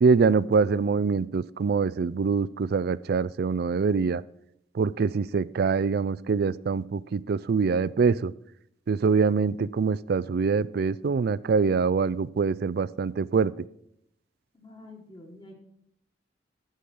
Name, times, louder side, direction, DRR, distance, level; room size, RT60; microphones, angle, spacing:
voice 1, 0.0-4.2 4.7-8.3 8.9-13.5, right 5 dB, 55° right, 19 dB, 0.4 m, -24 dB
voice 2, 14.5-15.5, left 2 dB, 25° left, 1 dB, 1.6 m, -47 dB
14.0 x 5.0 x 6.0 m, 0.74 s
head